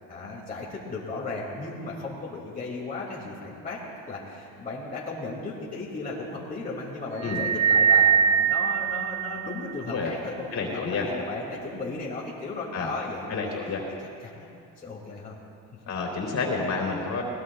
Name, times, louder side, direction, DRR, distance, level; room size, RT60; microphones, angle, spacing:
voice 1, 0.1-13.6 14.2-14.5 14.8-15.4, left 3 dB, 25° left, -5 dB, 2.6 m, -35 dB
sound 1, 7.2-9.9, right 8 dB, 50° right, 0.5 m, -22 dB
voice 2, 10.5-11.1 12.7-12.9 13.3-13.8 15.9-17.2, left 4 dB, 50° left, 0 dB, 3.5 m, -29 dB
22.5 x 19.0 x 2.4 m, 2.5 s
cardioid pair, 120°, 35 cm